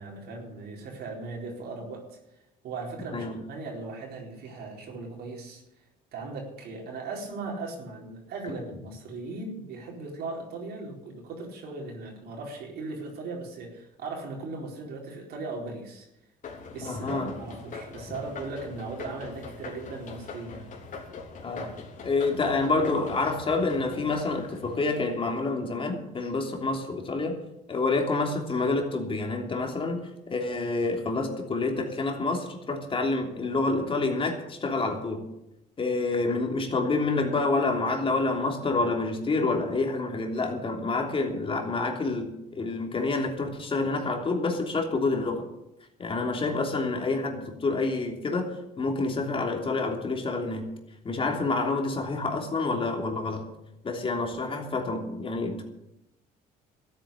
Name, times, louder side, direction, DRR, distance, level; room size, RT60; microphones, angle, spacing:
voice 1, 0.0-2.2 2.6-5.6 6.1-16.1 16.7-20.7, right 3 dB, 70° right, -1 dB, 4.4 m, -38 dB
sound 1, 16.4-25.5, left 4 dB, 50° left, 3.5 m, -42 dB
voice 2, 16.8-17.3 21.4-21.7 22.0-27.4 27.7-35.2 35.8-45.4 46.0-50.7 51.0-53.5 53.8-55.6, left 3 dB, 30° left, 2 dB, 3.2 m, -28 dB
14.0 x 9.0 x 8.6 m, 0.88 s
cardioid pair, 110°, 17 cm